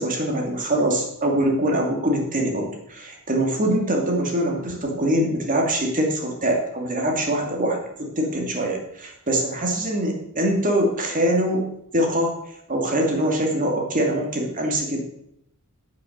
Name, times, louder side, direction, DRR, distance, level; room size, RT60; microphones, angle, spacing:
voice 1, 0.0-11.7 11.9-12.3 12.7-15.0, right 1 dB, 40° right, 1 dB, 2.5 m, -23 dB
8.7 x 8.5 x 6.6 m, 0.76 s
head